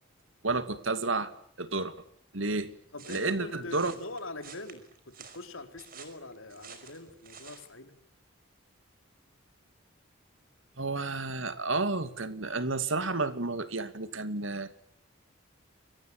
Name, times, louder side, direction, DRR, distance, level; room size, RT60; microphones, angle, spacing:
voice 1, 0.4-1.3 1.6-1.9 2.3-2.7 3.1-3.9 10.8-14.7, right 3 dB, 70° right, 11 dB, 2.5 m, -31 dB
voice 2, 2.9-7.9, left 2 dB, 75° left, 7 dB, 4.4 m, -43 dB
sound 1, 3.0-7.7, right 6 dB, 45° right, 5.3 m, -50 dB
29.5 x 24.0 x 8.4 m, 0.64 s
head